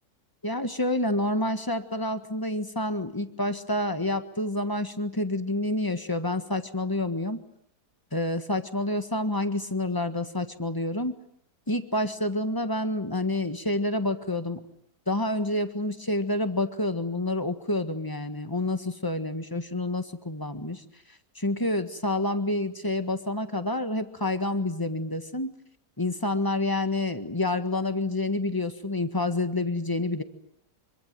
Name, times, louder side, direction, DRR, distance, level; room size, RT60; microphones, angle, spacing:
voice 1, 0.4-7.4 8.1-11.1 11.7-14.6 15.1-20.8 21.3-25.5 26.0-30.2, left 1 dB, 15° left, 9 dB, 1.5 m, -28 dB
25.5 x 24.5 x 9.3 m, 0.72 s
omnidirectional pair, 1.9 m